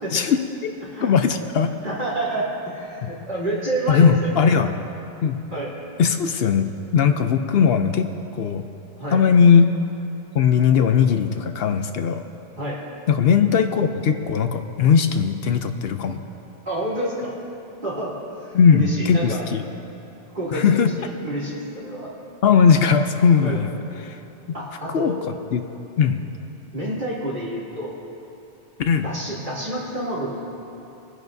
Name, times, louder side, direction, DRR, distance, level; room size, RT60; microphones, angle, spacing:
voice 1, 0.1-0.7 1.0-1.7 3.0-3.1 3.9-4.7 5.2-5.4 6.0-6.7 6.9-8.6 9.1-9.7 10.3-12.2 13.1-16.2 18.5-19.6 20.5-20.9 22.4-23.7 24.0-24.2 24.9-25.1 25.5-25.6 26.0-26.2 28.8-29.1, left 6 dB, 70° left, 7 dB, 0.8 m, -18 dB
voice 2, 0.8-1.1 1.8-4.5 5.5-5.7 9.0-9.2 12.6-12.8 16.6-17.3 17.8-18.1 18.4-19.4 20.3-22.1 23.4-23.6 24.5-25.1 26.7-27.9 29.0-30.4, right 1 dB, 50° right, -8 dB, 3.5 m, -28 dB
24.0 x 10.5 x 2.7 m, 2.9 s
omnidirectional pair, 1.1 m